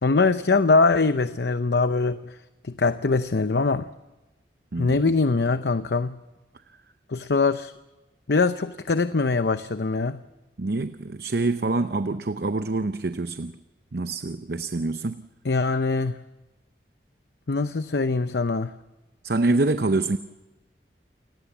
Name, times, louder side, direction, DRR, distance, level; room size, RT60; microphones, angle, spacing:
voice 1, 0.0-2.3 2.6-3.9 4.8-6.2 7.1-7.7 8.3-10.2 15.4-16.2 17.5-18.7, left 3 dB, 75° left, 11 dB, 0.7 m, -22 dB
voice 2, 4.7-5.0 10.6-13.6 13.9-15.3 19.2-20.2, right 2 dB, 65° right, 10 dB, 0.7 m, -26 dB
29.0 x 18.5 x 7.2 m, 1.1 s
head